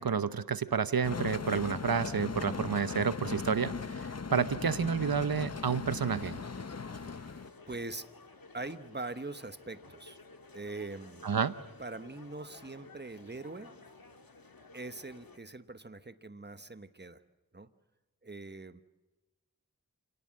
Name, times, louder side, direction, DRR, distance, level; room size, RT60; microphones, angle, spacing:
voice 1, 0.0-6.4 11.2-11.5, right 6 dB, 85° right, 14 dB, 0.9 m, -30 dB
sound 1, 1.0-7.5, left 5 dB, 45° left, 0.8 m, -38 dB
sound 2, 6.3-15.4, left 3 dB, 85° left, 1.8 m, -54 dB
voice 2, 6.9-7.3 7.7-8.1 8.5-10.2 10.5-11.3 11.8-13.7 14.7-17.2 17.5-17.7 18.2-18.8, right 3 dB, 30° right, 12 dB, 1.1 m, -42 dB
27.5 x 18.0 x 7.6 m, 1.1 s
wide cardioid pair, 40°, 35 cm